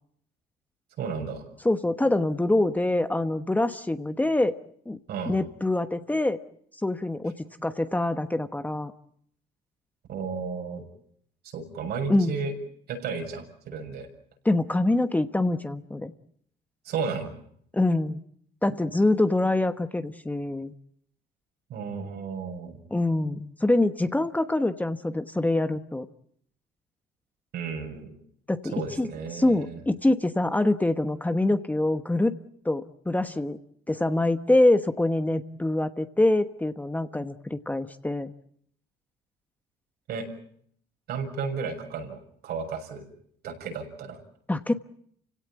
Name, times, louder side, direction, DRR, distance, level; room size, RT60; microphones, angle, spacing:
voice 1, 1.0-1.4 5.1-5.4 10.1-10.8 11.4-12.5 12.9-14.1 16.8-17.3 21.7-22.8 27.5-28.2 28.7-29.8 40.1-40.3 41.1-43.1 43.4-44.2, right 5 dB, 70° right, 4 dB, 6.6 m, -33 dB
voice 2, 1.6-4.5 4.9-5.0 5.3-6.4 6.8-7.3 7.6-8.9 12.1-12.4 14.4-16.1 17.7-18.2 18.6-20.7 22.9-26.1 28.5-29.1 29.3-32.4 32.6-33.6 33.9-38.3 44.5-44.7, left 2 dB, 10° left, 9 dB, 1.1 m, -25 dB
29.5 x 17.0 x 8.9 m, 0.68 s
cardioid pair, 110°, 17 cm